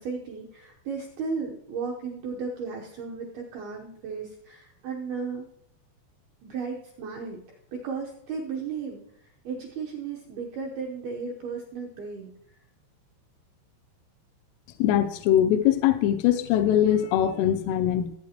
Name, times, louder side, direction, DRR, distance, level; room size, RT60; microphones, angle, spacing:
voice 1, 0.0-5.5 6.4-7.4 7.7-9.0 9.4-12.3, right 5 dB, 80° right, 0 dB, 2.2 m, -34 dB
voice 2, 14.8-18.2, left 11 dB, 85° left, 8 dB, 3.2 m, -22 dB
19.0 x 8.5 x 2.9 m, 0.76 s
omnidirectional pair, 5.8 m